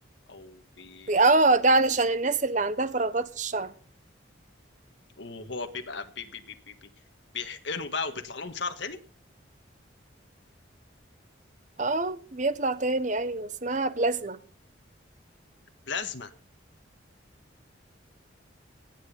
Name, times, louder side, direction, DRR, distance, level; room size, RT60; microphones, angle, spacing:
voice 1, 0.3-1.1 5.2-6.9 7.3-9.0 15.9-16.3, left 4 dB, 65° left, 1.6 m, -36 dB
voice 2, 1.1-3.7 11.8-14.4, right 3 dB, 40° right, 1.2 m, -24 dB
18.0 x 9.1 x 5.5 m
head